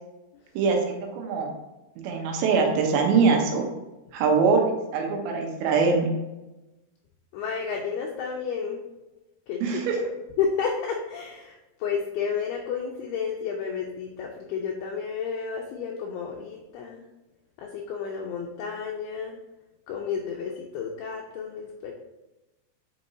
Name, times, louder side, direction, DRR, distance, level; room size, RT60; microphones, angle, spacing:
voice 1, 0.6-1.5 2.0-3.7 4.1-6.1 9.6-10.0, right 5 dB, 85° right, 2 dB, 3.2 m, -23 dB
voice 2, 7.3-8.8 9.5-9.6 10.4-11.6 11.8-17.0 17.6-19.4 19.9-21.9, left 6 dB, 80° left, 1 dB, 2.3 m, -31 dB
8.2 x 5.5 x 2.7 m, 1.0 s
omnidirectional pair, 5.1 m